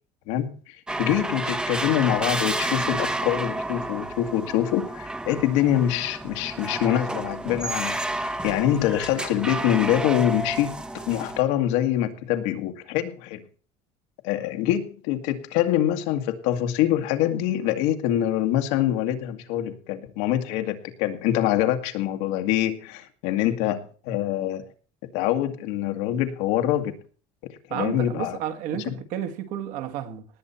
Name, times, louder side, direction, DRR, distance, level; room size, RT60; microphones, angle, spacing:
voice 1, 0.3-13.4 14.2-24.7 25.1-27.0 27.7-28.4 28.9-29.0, left 12 dB, 85° left, 2.1 m, -25 dB
sound 1, 0.9-11.4, right 1 dB, 5° right, 0.7 m, -30 dB
voice 2, 27.7-30.3, right 10 dB, 65° right, 1.7 m, -31 dB
19.0 x 8.3 x 4.4 m
cardioid pair, 175°, 14 cm